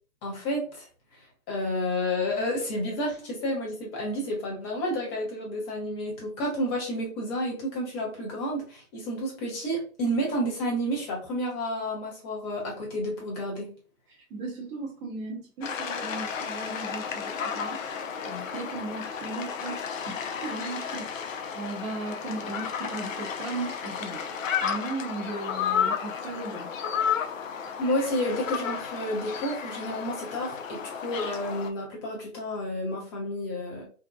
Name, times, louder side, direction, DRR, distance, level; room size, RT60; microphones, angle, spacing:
voice 1, 0.2-0.9 1.2-13.7 27.8-33.8, equal, 20° left, -2 dB, 0.7 m, -30 dB
voice 2, 14.1-17.8 18.3-24.2 24.6-26.7, right 2 dB, 20° right, -2 dB, 0.7 m, -37 dB
sound 1, 15.6-31.7, left 7 dB, 65° left, 0.5 m, -33 dB
2.6 x 2.1 x 2.2 m, 0.37 s
hypercardioid pair, 135°, 43 cm